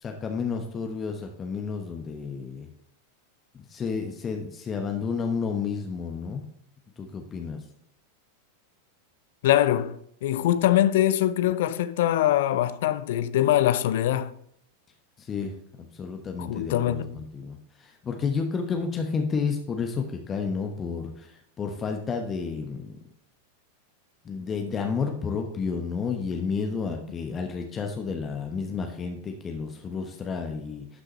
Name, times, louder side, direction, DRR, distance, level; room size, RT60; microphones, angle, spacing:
voice 1, 0.0-2.7 3.5-6.4 7.0-7.6 15.2-23.0 24.2-31.0, left 5 dB, 20° left, 1.1 m, -31 dB
voice 2, 9.4-14.3 16.4-17.2, left 12 dB, 55° left, 0.5 m, -23 dB
11.5 x 6.2 x 3.1 m
figure-of-eight pair, 90°, 0 cm